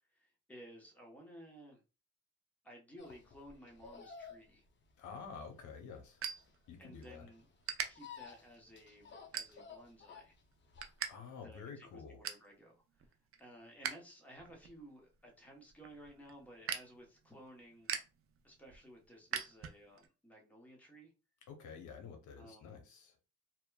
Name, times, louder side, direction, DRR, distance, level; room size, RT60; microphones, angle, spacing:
voice 1, 0.1-1.8 2.6-4.6 6.8-7.4 7.9-10.3 11.4-13.1 13.4-17.9 18.4-21.1 22.3-22.7, equal, 5° left, 0.9 m, -56 dB
sound 1, 3.0-11.1, left 6 dB, 40° left, 0.5 m, -55 dB
voice 2, 5.0-6.2 6.7-7.3 11.1-12.2 21.5-23.2, left 6 dB, 75° left, 0.7 m, -49 dB
sound 2, 5.1-7.1 7.4-7.9 8.4-8.7 9.2-9.9 10.3-11.1 11.4-11.5 11.9-12.5 13.0-13.9 14.3-20.1, right 8 dB, 45° right, 0.5 m, -43 dB
2.8 x 2.1 x 2.2 m
cardioid pair, 90°, 30 cm